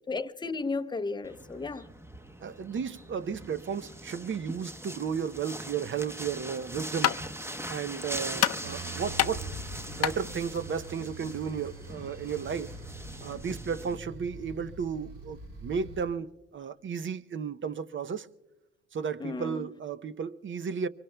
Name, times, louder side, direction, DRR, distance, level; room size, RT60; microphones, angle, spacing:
voice 1, 0.0-1.9 19.2-19.6, left 3 dB, 15° left, 0.6 m, -34 dB
sound 1, 1.2-13.9, right 1 dB, 10° right, 0.9 m, -42 dB
voice 2, 2.4-9.5 9.9-12.7 13.2-18.3 18.9-20.9, right 6 dB, 40° right, 0.6 m, -34 dB
sound 2, 6.5-11.8, left 11 dB, 55° left, 0.6 m, -32 dB
sound 3, 8.6-16.0, right 2 dB, 80° right, 2.6 m, -44 dB
24.5 x 23.5 x 2.2 m
cardioid pair, 90°, 30 cm